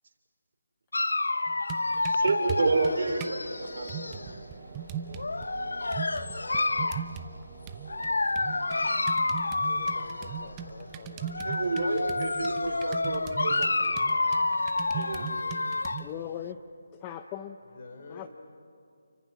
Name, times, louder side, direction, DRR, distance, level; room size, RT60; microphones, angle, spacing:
Dog, 0.9-4.3 5.1-7.1 7.9-10.5 11.2-16.1, left 3 dB, 85° left, 0.8 m, -29 dB
sound 1, 1.5-3.4 3.9-5.5 5.9-7.4 7.7-16.1, right 8 dB, 15° right, 0.8 m, -40 dB
voice 1, 2.0-3.9 11.4-13.9 14.9-15.2, right 3 dB, 55° right, 4 dB, 3.7 m, -30 dB
sound 2, 2.1-16.3, right 4 dB, 30° right, 2.8 m, -49 dB
voice 2, 9.6-11.5 17.7-18.3, left 3 dB, 45° left, 4 dB, 3.6 m, -47 dB
voice 3, 16.0-16.6 16.9-17.6 18.1-18.3, left 10 dB, 20° left, 8 dB, 0.7 m, -38 dB
29.5 x 24.0 x 6.2 m, 2.4 s
figure-of-eight pair, 165°, 0 cm